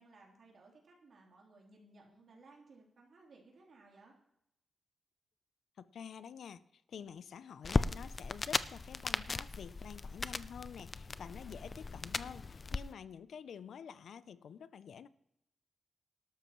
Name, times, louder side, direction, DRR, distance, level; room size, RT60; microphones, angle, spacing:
voice 1, 0.0-4.2, right 3 dB, 55° right, -2 dB, 3.5 m, -60 dB
voice 2, 5.8-15.1, left 7 dB, 80° left, 15 dB, 0.5 m, -49 dB
sound 1, 7.6-12.8, left 3 dB, 30° left, 0.4 m, -37 dB
18.0 x 12.5 x 3.1 m, 0.78 s
wide cardioid pair, 160°, 0 cm